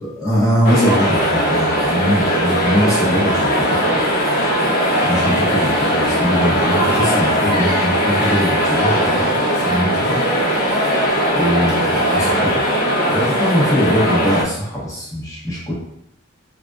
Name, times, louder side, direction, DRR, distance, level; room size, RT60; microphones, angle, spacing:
voice 1, 0.0-4.2 5.0-9.3 9.6-10.2 11.3-12.6 13.1-15.7, equal, 15° left, -6 dB, 0.9 m, -21 dB
sound 1, 0.6-14.4, equal, 50° left, 0.8 m, -18 dB
3.4 x 2.4 x 2.4 m, 0.75 s
head